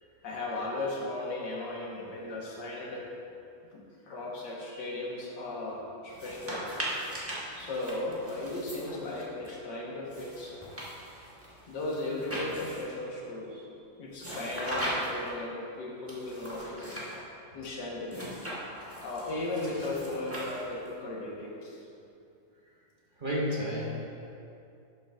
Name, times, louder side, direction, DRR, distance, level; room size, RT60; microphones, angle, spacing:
voice 1, 0.2-3.0 3.7-6.8 7.5-10.5 11.7-13.5 14.0-17.0 17.5-18.2 19.0-21.8, left 2 dB, 85° left, -3 dB, 1.9 m, -36 dB
sound 1, 6.1-9.5 10.1-13.0 14.2-15.3 16.1-17.2 18.1-20.9, equal, 10° right, 1.2 m, -39 dB
voice 2, 23.2-24.2, equal, 35° right, -5 dB, 1.0 m, -33 dB
11.0 x 7.0 x 2.5 m, 2.6 s
omnidirectional pair, 1.8 m